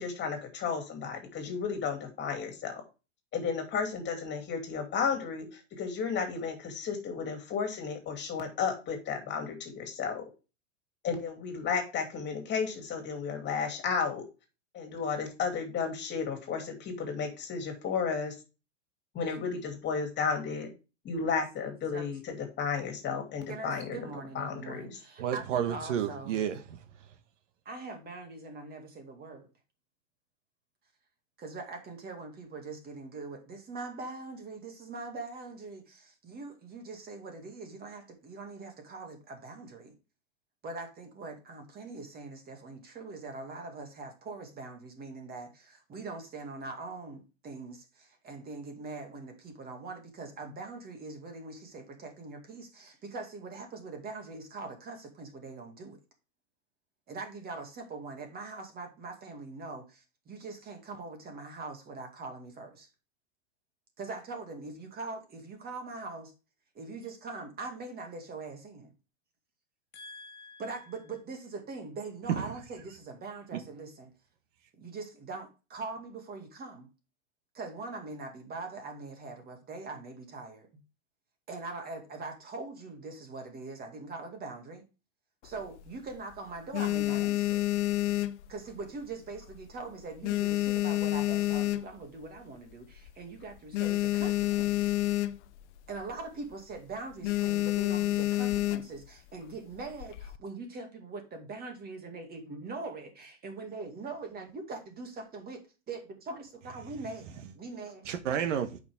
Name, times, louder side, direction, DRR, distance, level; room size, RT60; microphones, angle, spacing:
voice 1, 0.0-2.8 3.3-10.2 11.0-14.2 14.7-18.3 19.1-20.7 21.0-24.0 24.3-25.0 69.9-70.6, left 6 dB, 30° left, 2.7 m, -33 dB
voice 2, 23.5-26.4 27.7-29.5 31.4-39.9 40.6-56.0 57.1-62.9 64.0-66.3 66.7-68.9 70.6-74.1 74.8-76.9 77.5-80.7 81.5-84.8 85.4-87.7 88.5-94.9 95.9-105.6 105.9-108.1, right 3 dB, 25° right, 2.3 m, -42 dB
voice 3, 25.2-26.8 72.3-72.4 108.1-108.8, right 9 dB, 75° right, 1.5 m, -30 dB
sound 1, 85.4-86.2 86.6-89.0 89.3-89.7 90.0-92.2 92.7-92.8 93.0-93.1 93.4-95.6 95.9-96.2 96.5-96.8 97.2-99.1 99.8-100.4, left 16 dB, 65° left, 0.8 m, -29 dB
8.5 x 5.7 x 3.6 m
supercardioid pair, 130°, 37 cm